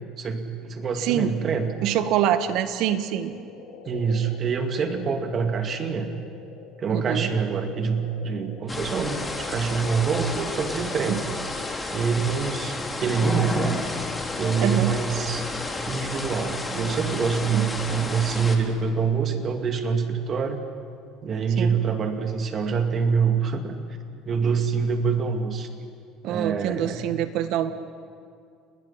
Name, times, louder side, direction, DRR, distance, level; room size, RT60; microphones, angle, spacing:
voice 1, 0.2-1.7 3.9-6.1 6.8-11.3 11.9-12.7 13.0-13.8 14.4-15.4 15.9-20.6 21.2-23.8 24.2-25.7 26.2-27.1, right 5 dB, 35° right, 5 dB, 2.3 m, -25 dB
voice 2, 1.0-1.3 1.8-3.3 6.9-7.3 11.1-11.2 14.6-14.9 17.5-17.7 21.6-21.8 26.2-27.7, right 10 dB, 65° right, 10 dB, 1.5 m, -25 dB
sound 1, 1.1-12.5, left 6 dB, 90° left, 4.7 m, -46 dB
sound 2, 8.7-18.6, left 2 dB, 15° left, 2.8 m, -31 dB
30.0 x 20.0 x 5.9 m, 2.3 s
cardioid pair, 120°, 0 cm